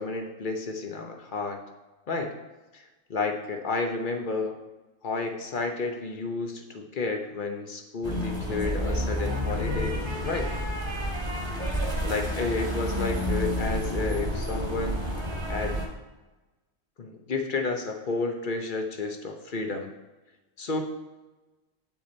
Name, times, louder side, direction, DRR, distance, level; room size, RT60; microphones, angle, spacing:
voice 1, 0.0-1.6 2.1-2.3 2.7-2.8 3.1-4.5 5.0-10.0 10.2-10.5 12.0-15.0 15.5-15.8 17.0-19.9 20.6-20.8, left 3 dB, 45° left, 4 dB, 0.9 m, -31 dB
sound 1, 8.0-15.9, equal, 20° right, 1.2 m, -29 dB
8.3 x 5.9 x 4.2 m, 1.1 s
omnidirectional pair, 1.4 m